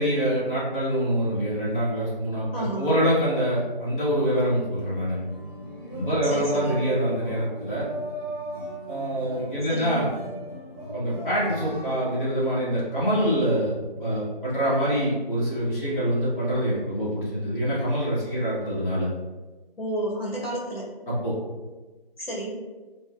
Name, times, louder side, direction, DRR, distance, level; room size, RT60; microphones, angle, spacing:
voice 1, 0.0-5.2 5.9-7.8 8.9-10.1 10.9-19.1 21.1-21.3, equal, 60° left, -9 dB, 1.3 m, -25 dB
voice 2, 2.5-2.9 6.3-6.8 9.7-10.0 19.8-20.9 22.2-22.6, right 1 dB, 75° left, -4 dB, 1.4 m, -30 dB
sound 1, 4.8-12.1, right 1 dB, 25° left, 1.1 m, -37 dB
3.4 x 2.1 x 2.3 m, 1.2 s
figure-of-eight pair, 180°, 29 cm